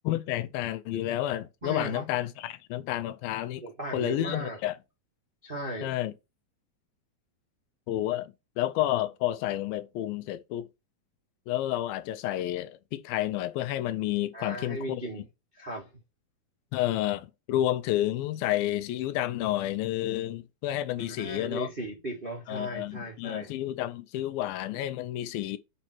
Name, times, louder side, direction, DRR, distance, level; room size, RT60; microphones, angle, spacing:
voice 1, 0.1-3.6 3.9-4.8 5.8-6.1 7.9-10.7 11.5-15.0 16.7-21.7 22.5-25.6, left 14 dB, 80° left, 2.3 m, -30 dB
voice 2, 1.6-2.0 3.6-4.6 5.4-5.9 14.3-15.2 15.5-15.9 21.0-23.5, right 1 dB, 75° right, 0.5 m, -37 dB
8.9 x 4.2 x 4.5 m
omnidirectional pair, 4.3 m